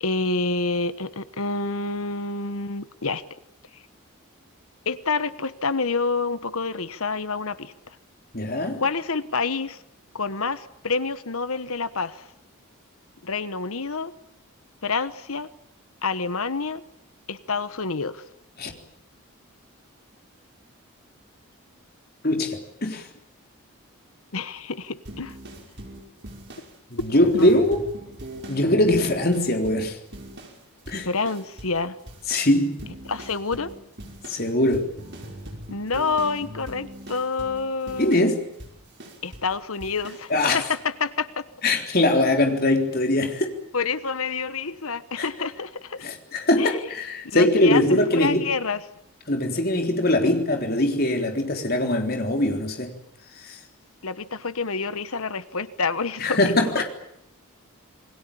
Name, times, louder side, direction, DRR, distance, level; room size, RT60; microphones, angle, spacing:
voice 1, 0.0-3.2 3.7-3.8 4.8-8.0 8.8-9.8 10.1-12.3 13.2-14.1 14.8-15.5 16.0-16.8 17.3-18.2 24.3-25.4 27.3-27.5 31.0-32.0 33.0-33.7 35.7-38.2 39.2-41.4 43.7-46.1 46.6-46.8 47.3-48.8 54.0-56.9, left 4 dB, 75° left, 1.2 m, -28 dB
voice 2, 8.3-8.8 18.6-18.7 22.2-23.1 26.9-27.8 28.5-30.0 30.9-31.1 32.3-32.8 34.3-34.9 38.0-38.4 40.3-40.6 41.6-43.5 45.2-45.3 46.0-48.4 49.3-52.9 53.4-53.6 56.2-56.8, left 1 dB, 45° left, 3.8 m, -22 dB
sound 1, 25.1-30.6 30.9-31.8 32.1-39.5 39.8-40.3, right 1 dB, 50° right, 5.4 m, -41 dB
27.5 x 21.5 x 8.7 m
head